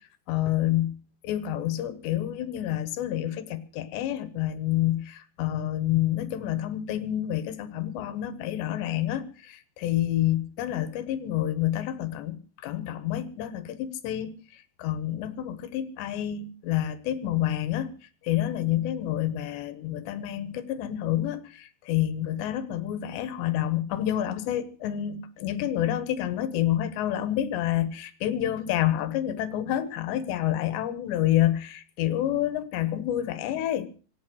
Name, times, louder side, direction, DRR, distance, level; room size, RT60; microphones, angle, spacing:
voice 1, 0.3-1.0 1.2-12.4 12.6-17.9 18.2-33.9, left 12 dB, 90° left, 13 dB, 3.5 m, -28 dB
25.5 x 8.6 x 6.3 m, 0.41 s
omnidirectional pair, 4.9 m